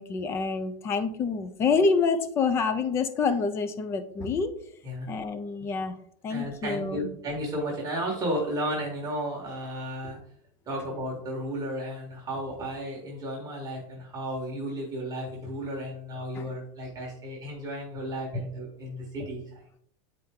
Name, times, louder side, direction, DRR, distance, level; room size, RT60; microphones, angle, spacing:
voice 1, 0.0-4.5 5.1-6.0 6.2-7.1 16.3-16.5, left 4 dB, 15° left, 11 dB, 0.3 m, -27 dB
voice 2, 6.3-10.2 10.7-19.6, equal, 15° right, -2 dB, 1.4 m, -33 dB
9.4 x 4.3 x 3.6 m, 0.66 s
supercardioid pair, 180°, 20 cm